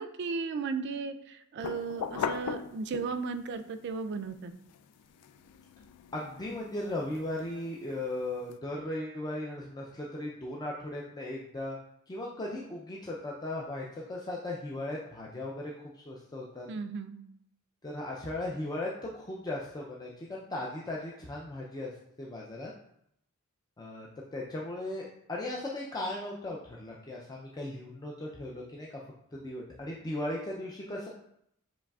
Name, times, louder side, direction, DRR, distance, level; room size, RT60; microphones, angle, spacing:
voice 1, 0.0-4.5 16.7-17.2, right 4 dB, 50° right, 9 dB, 0.3 m, -35 dB
sound 1, 1.6-3.4 3.9-8.5, left 7 dB, 90° left, 0.3 m, -40 dB
voice 2, 6.1-11.8 12.1-16.7 17.8-21.9 22.2-22.7 23.8-29.0 29.3-31.1, left 1 dB, 15° left, -3 dB, 0.4 m, -37 dB
7.2 x 3.1 x 2.3 m, 0.75 s
head